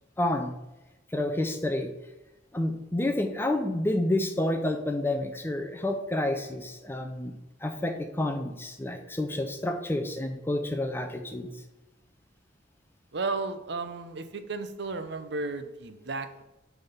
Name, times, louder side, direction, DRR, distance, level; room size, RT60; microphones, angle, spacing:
voice 1, 0.2-0.5 1.1-1.9 2.5-7.3 7.6-11.5, left 1 dB, 10° left, 5 dB, 0.5 m, -29 dB
voice 2, 13.1-16.4, right 3 dB, 60° right, 10 dB, 0.7 m, -34 dB
9.4 x 3.6 x 5.6 m, 1.0 s
head